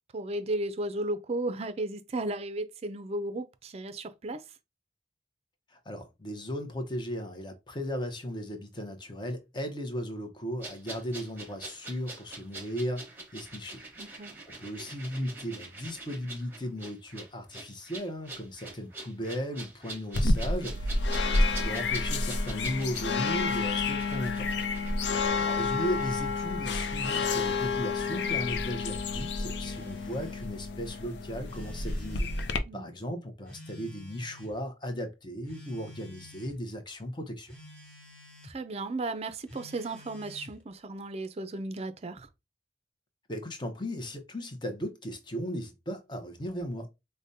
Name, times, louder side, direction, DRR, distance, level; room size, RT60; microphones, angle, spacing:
voice 1, 0.1-4.4 14.0-14.3 20.3-20.7 32.6-32.9 38.4-42.3, right 2 dB, 35° right, 0.4 m, -35 dB
voice 2, 5.7-13.0 13.3-21.1 21.5-24.5 25.5-32.3 32.7-37.6 43.3-46.9, equal, 25° left, 0.7 m, -36 dB
sound 1, 10.6-26.1 26.4-26.5, right 2 dB, 10° right, 1.1 m, -45 dB
sound 2, 20.1-32.6, left 3 dB, 80° left, 0.5 m, -29 dB
Telephone, 25.4-26.5 27.3-28.5 29.4-30.5 31.5-32.6 33.5-34.6 35.4-36.5 37.5-38.6 39.5-40.6, equal, 10° left, 1.2 m, -50 dB
5.0 x 2.1 x 2.7 m
head